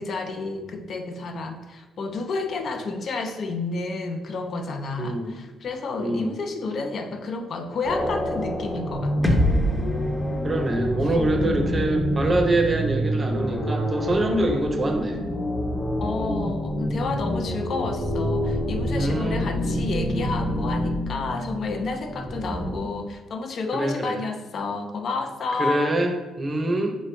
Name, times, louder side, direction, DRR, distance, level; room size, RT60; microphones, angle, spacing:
voice 1, 0.0-9.4 16.0-26.0, left 3 dB, 55° left, 5 dB, 0.5 m, -30 dB
voice 2, 5.0-5.4 6.0-6.3 10.4-15.2 18.9-19.4 23.7-24.2 25.6-27.0, right 1 dB, 30° right, 4 dB, 0.7 m, -24 dB
sound 1, 7.8-22.8, equal, 30° left, 1.2 m, -27 dB
sound 2, 9.2-13.2, left 1 dB, 5° left, 0.7 m, -27 dB
4.8 x 3.1 x 3.2 m, 1.1 s
cardioid pair, 90°, 0 cm